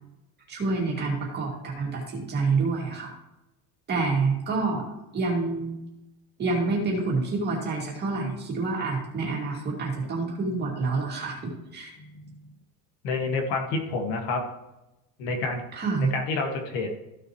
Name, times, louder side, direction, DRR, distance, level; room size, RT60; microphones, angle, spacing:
voice 1, 0.5-3.1 3.9-4.8 5.1-5.8 6.4-11.9 15.7-16.1, right 3 dB, 25° right, -3 dB, 2.4 m, -27 dB
voice 2, 13.0-14.4 15.2-15.6 16.1-16.9, left 3 dB, 60° left, 3 dB, 1.9 m, -28 dB
14.5 x 6.6 x 3.1 m, 0.93 s
cardioid pair, 170°, 40 cm